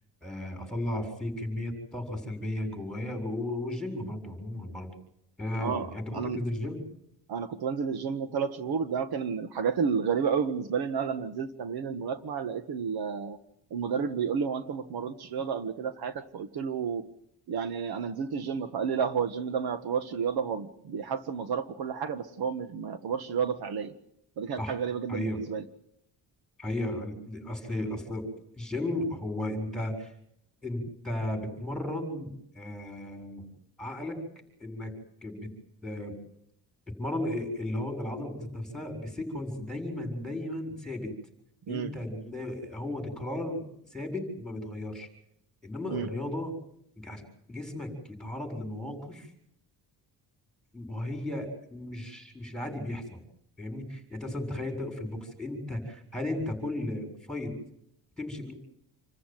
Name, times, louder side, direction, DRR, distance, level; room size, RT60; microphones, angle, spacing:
voice 1, 0.2-4.9 5.4-6.8 24.6-24.7 25.1-25.4 26.6-28.3 28.5-30.1 30.6-32.3 32.5-33.4 33.8-34.2 34.6-34.9 35.2-35.5 35.8-36.2 37.0-41.1 41.7-43.6 43.9-45.1 45.6-46.5 47.0-49.3 50.7-53.2 53.6-57.6 58.2-58.5, left 1 dB, ahead, 5 dB, 7.4 m, -35 dB
voice 2, 7.3-13.4 13.7-17.0 17.5-23.9 24.4-25.6 41.7-41.9 45.9-46.1, right 6 dB, 70° right, 10 dB, 1.8 m, -31 dB
28.5 x 14.5 x 9.3 m, 0.74 s
cardioid pair, 100°, 39 cm